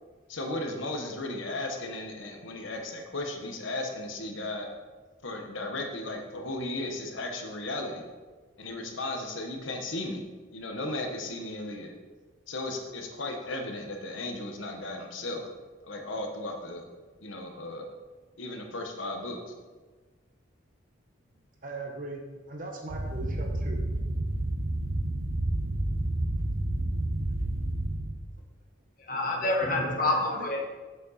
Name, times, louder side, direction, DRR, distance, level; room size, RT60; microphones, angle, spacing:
voice 1, 0.3-4.7 5.2-8.0 8.6-10.2 10.5-11.9 12.5-15.4 15.8-16.8 17.2-17.9 18.4-19.4, left 2 dB, 75° left, 3 dB, 1.2 m, -35 dB
voice 2, 21.6-22.2 22.5-23.8 29.8-30.4, right 2 dB, 40° right, 1 dB, 1.0 m, -38 dB
sound 1, 22.9-28.1, right 1 dB, 85° right, 0.9 m, -30 dB
voice 3, 29.0-30.7, left 2 dB, 45° left, 0 dB, 1.4 m, -27 dB
8.4 x 7.4 x 4.1 m, 1.3 s
head